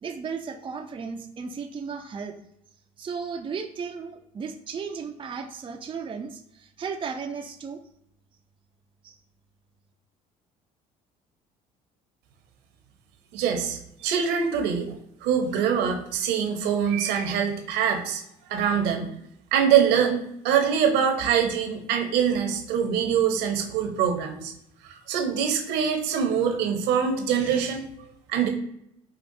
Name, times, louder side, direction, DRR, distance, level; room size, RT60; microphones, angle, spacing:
voice 1, 0.0-2.3 3.0-7.8 9.0-9.2, right 5 dB, 30° right, 3 dB, 0.5 m, -35 dB
voice 2, 13.3-14.9 15.2-18.2 18.5-19.1 19.5-20.2 20.4-24.5 24.8-27.8 28.3-28.5, right 8 dB, 75° right, 3 dB, 0.9 m, -24 dB
5.2 x 2.4 x 2.7 m, 0.76 s
hypercardioid pair, 70°, 18 cm